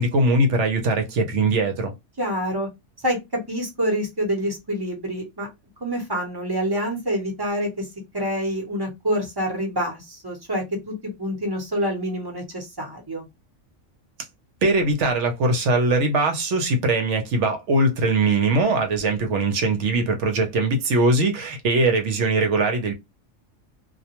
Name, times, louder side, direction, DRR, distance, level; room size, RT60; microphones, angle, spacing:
voice 1, 0.0-1.9 14.6-22.9, right 2 dB, 70° right, 1.0 m, -21 dB
voice 2, 2.2-2.7 3.0-5.5 5.8-7.9 8.1-13.3, equal, 20° right, 0.8 m, -27 dB
2.4 x 2.2 x 2.8 m
omnidirectional pair, 1.3 m